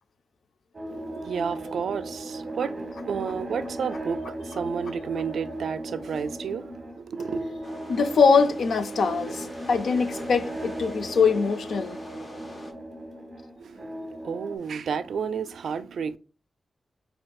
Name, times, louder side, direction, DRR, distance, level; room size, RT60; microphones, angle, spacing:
sound 1, 0.7-14.6, right 1 dB, 30° right, 0.9 m, -37 dB
voice 1, 0.8-7.6 13.6-16.2, right 6 dB, 90° right, 0.3 m, -32 dB
sound 2, 7.6-12.7, left 1 dB, 30° left, 0.8 m, -44 dB
voice 2, 7.9-12.0, left 5 dB, 70° left, 0.5 m, -22 dB
7.5 x 2.7 x 2.4 m
wide cardioid pair, 175°, 0 cm